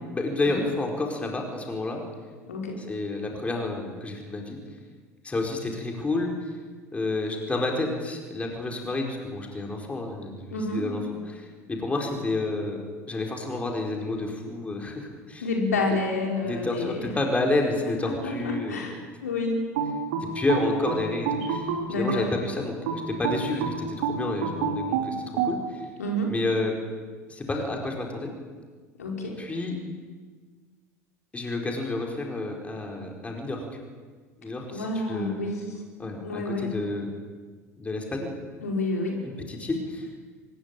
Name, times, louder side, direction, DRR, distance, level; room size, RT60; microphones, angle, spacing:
voice 1, 0.1-2.0 2.9-4.6 5.2-6.3 6.9-11.0 11.3-15.4 16.5-18.8 20.2-25.2 25.4-25.9 26.3-26.7 27.3-28.3 29.4-29.8 31.3-33.6 34.4-35.4 36.0-37.1 37.8-38.3 39.5-40.1, left 2 dB, 15° left, 1 dB, 4.7 m, -30 dB
voice 2, 2.4-2.8 10.5-10.8 15.4-17.2 17.8-19.6 21.9-22.3 26.0-26.3 29.0-29.4 34.7-35.8 36.2-36.7 38.6-39.2, left 2 dB, 70° left, 0 dB, 5.2 m, -29 dB
Field Music, 19.7-22.3 22.9-25.6, right 6 dB, 60° right, 4.1 m, -28 dB
24.5 x 21.0 x 9.1 m, 1.5 s
figure-of-eight pair, 75°, 9 cm